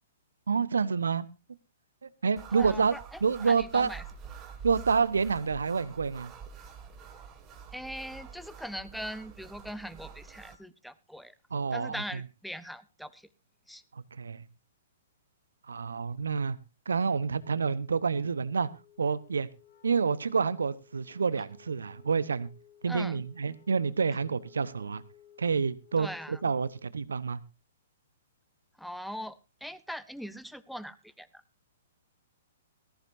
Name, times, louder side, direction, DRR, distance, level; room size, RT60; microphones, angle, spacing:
voice 1, 0.5-1.2 2.2-2.9 3.2-3.9 4.6-6.3 11.5-11.9 14.2-14.4 15.7-16.6 16.9-18.7 19.0-19.5 19.8-22.5 22.8-25.0 25.4-27.4, right 5 dB, 75° right, 17 dB, 0.9 m, -28 dB
sound 1, 2.4-10.6, right 6 dB, 25° right, 1.9 m, -47 dB
voice 2, 2.5-4.0 7.7-11.4 11.7-13.3 13.7-13.8 22.9-23.2 26.0-26.5 28.8-31.4, equal, ahead, 15 dB, 0.8 m, -41 dB
Wind instrument woodwind instrument, 17.2-26.9, left 9 dB, 60° left, 3.5 m, -58 dB
19.0 x 14.5 x 2.6 m, 0.28 s
figure-of-eight pair, 120°, 0 cm